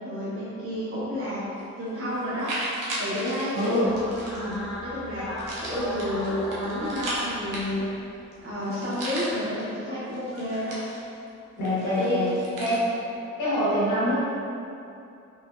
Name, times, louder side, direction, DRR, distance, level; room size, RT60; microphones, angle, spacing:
voice 1, 0.0-1.4 1.8-2.5 3.0-3.9 4.3-5.3 5.6-7.9 8.4-10.8 11.8-12.3, left 1 dB, 45° right, -11 dB, 1.0 m, -30 dB
sound 1, 1.6-1.7 2.2-4.5 5.4-8.0 8.3-8.4 8.6-9.6 10.1-11.3 11.6-12.8, right 1 dB, 80° right, 0.8 m, -36 dB
voice 2, 3.5-3.9 11.5-12.3 12.6-12.8 13.4-14.2, left 1 dB, 70° left, -9 dB, 1.4 m, -25 dB
sound 2, 3.8-8.2, equal, ahead, 0.4 m, -36 dB
4.0 x 2.7 x 2.4 m, 2.6 s
cardioid pair, 140°, 31 cm